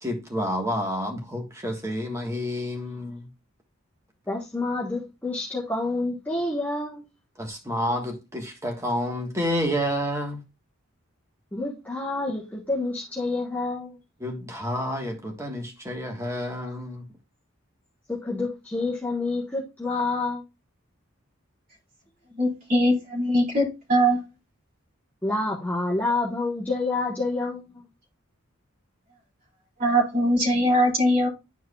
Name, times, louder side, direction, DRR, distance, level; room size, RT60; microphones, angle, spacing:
voice 1, 0.0-3.3 7.4-10.4 14.2-17.1, equal, 15° right, 1.4 m, -29 dB
voice 2, 4.3-7.0 11.5-14.0 18.1-20.4 25.2-27.6, left 2 dB, 10° left, 1.3 m, -28 dB
voice 3, 22.4-24.2 29.8-31.3, equal, 45° right, 3.4 m, -21 dB
11.0 x 4.6 x 2.3 m
head